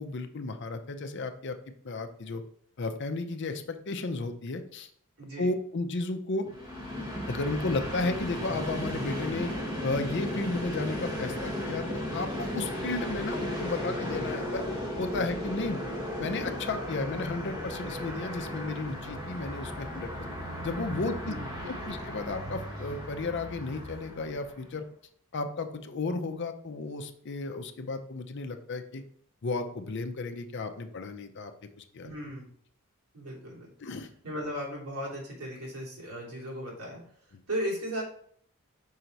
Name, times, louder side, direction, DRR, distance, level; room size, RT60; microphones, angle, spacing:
voice 1, 0.0-1.6 1.8-2.4 2.8-4.9 5.4-6.5 7.3-9.5 9.8-14.6 15.0-15.8 16.2-20.1 20.6-21.3 21.7-24.8 25.3-29.0 29.4-31.5 31.8-32.1 33.8-34.1, left 3 dB, 55° left, 8 dB, 0.6 m, -33 dB
voice 2, 5.2-5.5 21.3-21.9 32.0-32.5 33.1-33.7 34.2-38.0, equal, 80° right, -5 dB, 2.9 m, -37 dB
Train, 6.5-24.6, equal, 20° right, 1.4 m, -35 dB
5.6 x 4.5 x 3.9 m, 0.62 s
head